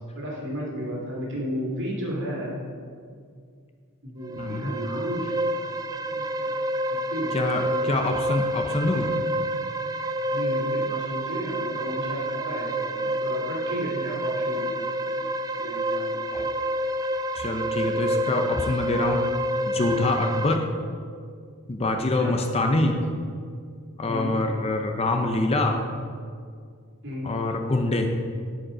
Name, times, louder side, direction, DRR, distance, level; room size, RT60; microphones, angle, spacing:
voice 1, 0.1-2.6 4.0-5.7 6.1-8.1 10.3-16.5 21.8-22.3 24.1-24.4 27.0-27.3, equal, 55° right, -3 dB, 2.3 m, -34 dB
sound 1, 4.2-20.6, right 1 dB, 15° right, 0.3 m, -28 dB
voice 2, 4.4-4.7 7.3-9.1 16.3-16.4 17.4-19.3 19.7-20.7 21.7-23.0 24.0-25.8 27.2-28.1, left 2 dB, 25° left, 4 dB, 0.6 m, -25 dB
11.5 x 5.3 x 5.0 m, 2.1 s
head